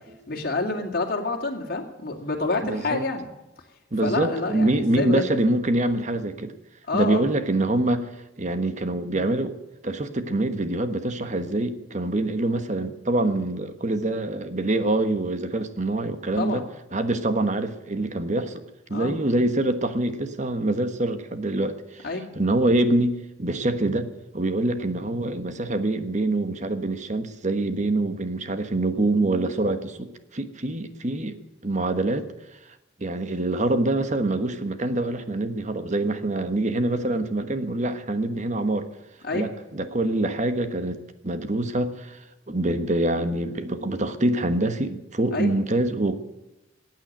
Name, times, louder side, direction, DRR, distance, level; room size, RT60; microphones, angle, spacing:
voice 1, 0.3-3.3 4.0-5.3 6.9-7.2 16.4-16.6 18.9-19.2 22.0-22.3 39.2-39.5 45.3-45.5, left 3 dB, 50° left, 2.4 m, -28 dB
voice 2, 2.6-3.0 3.9-6.5 6.9-8.1 8.4-9.6 9.8-16.6 16.9-18.6 18.9-22.1 22.4-24.1 24.3-32.3 33.0-38.9 39.3-42.2 42.5-46.2, right 2 dB, 40° right, 1.2 m, -25 dB
15.0 x 9.1 x 9.0 m
head